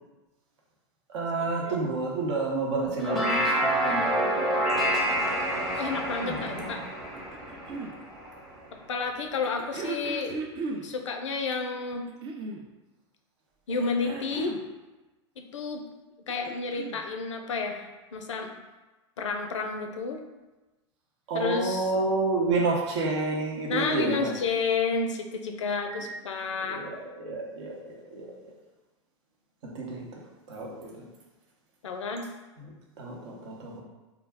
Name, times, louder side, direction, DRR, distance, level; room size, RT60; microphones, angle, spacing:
voice 1, 1.1-4.1 6.2-6.7 21.3-24.3 26.6-28.3 29.7-30.0 30.5-30.7 33.0-33.8, right 3 dB, 65° right, -2 dB, 0.8 m, -29 dB
sound 1, 2.8-8.4, right 1 dB, ahead, 0.7 m, -28 dB
voice 2, 5.8-6.8 8.9-10.4 10.8-12.1 13.7-14.6 15.4-15.8 16.3-18.6 19.2-20.2 21.3-21.9 23.7-26.8 31.8-32.3, left 4 dB, 85° left, 4 dB, 0.4 m, -31 dB
sound 2, 7.1-7.9 9.4-10.9 11.9-12.7 13.7-14.7 16.1-17.0 18.2-18.3, right 4 dB, 35° right, 0.4 m, -37 dB
2.3 x 2.1 x 3.3 m, 1.1 s
hypercardioid pair, 105°, 15 cm